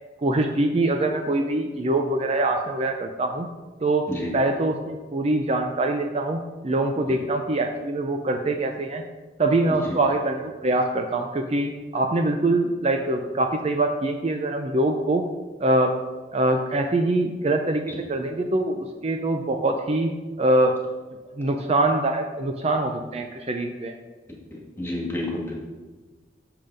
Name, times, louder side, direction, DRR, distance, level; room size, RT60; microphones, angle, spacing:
voice 1, 0.2-3.5 3.8-9.0 9.4-15.2 15.6-15.9 16.3-20.1 20.4-20.7 21.4-23.9, right 2 dB, 35° right, 4 dB, 0.5 m, -24 dB
voice 2, 24.5-25.5, left 1 dB, 15° left, -3 dB, 1.6 m, -30 dB
6.8 x 5.7 x 5.2 m, 1.3 s
head